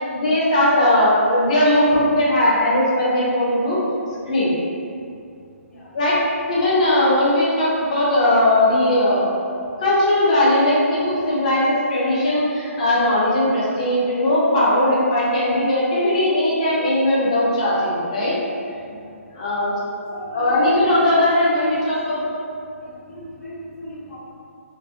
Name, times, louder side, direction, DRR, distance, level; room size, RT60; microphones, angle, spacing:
voice 1, 0.0-3.8 4.3-4.5 5.9-6.2 6.5-9.2 9.8-18.4 19.3-19.7 20.3-22.3, left 1 dB, 30° left, -7 dB, 0.5 m, -18 dB
voice 2, 20.1-21.2 21.6-21.9 22.8-24.2, equal, 75° left, -8 dB, 0.9 m, -37 dB
2.4 x 2.3 x 2.5 m, 2.4 s
hypercardioid pair, 175°, 8 cm